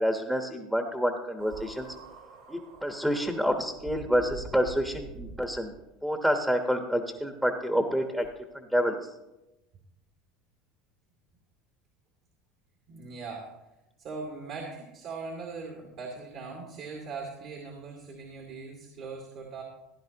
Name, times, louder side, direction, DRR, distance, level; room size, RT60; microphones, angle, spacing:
voice 1, 0.0-1.9 2.5-5.7 6.0-8.2 8.5-9.1, equal, 5° right, 5 dB, 1.2 m, -28 dB
sound 1, 1.4-5.9 6.7-6.8 8.2-8.3, right 4 dB, 80° right, 3.1 m, -46 dB
voice 2, 12.9-13.5 14.0-19.6, right 4 dB, 55° right, 1 dB, 2.4 m, -40 dB
16.0 x 10.0 x 3.0 m, 1.0 s
hypercardioid pair, 90°, 0 cm